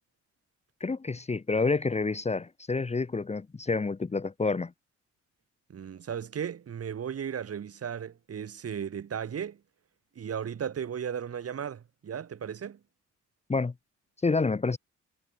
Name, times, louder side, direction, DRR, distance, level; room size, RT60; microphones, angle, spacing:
voice 1, 0.8-4.7 13.5-13.7 14.2-14.8, left 4 dB, 20° left, 1.3 m, -28 dB
voice 2, 5.7-9.6 10.2-12.8, right 8 dB, 50° right, 4.2 m, -35 dB
cardioid pair, 90°, 30 cm